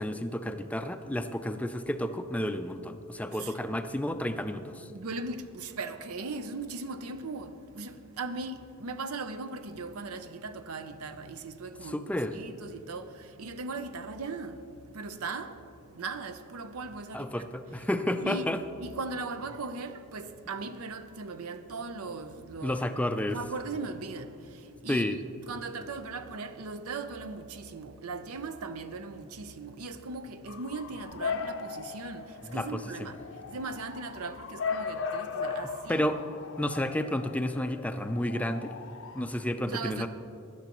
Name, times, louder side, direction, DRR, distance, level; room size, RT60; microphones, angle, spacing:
voice 1, 0.0-4.9 11.9-12.4 17.1-18.6 22.6-23.4 24.9-25.2 32.5-32.7 33.0-33.1 35.9-36.2 36.6-38.7 39.2-40.1, left 1 dB, 5° left, 0.4 m, -31 dB
voice 2, 4.9-12.0 12.3-15.7 15.9-17.9 18.2-18.5 18.8-22.8 23.3-36.0 39.7-40.1, right 3 dB, 80° right, 0.7 m, -39 dB
Bark / Motor vehicle (road) / Siren, 30.5-39.2, left 5 dB, 60° left, 0.6 m, -38 dB
16.5 x 11.5 x 3.0 m
head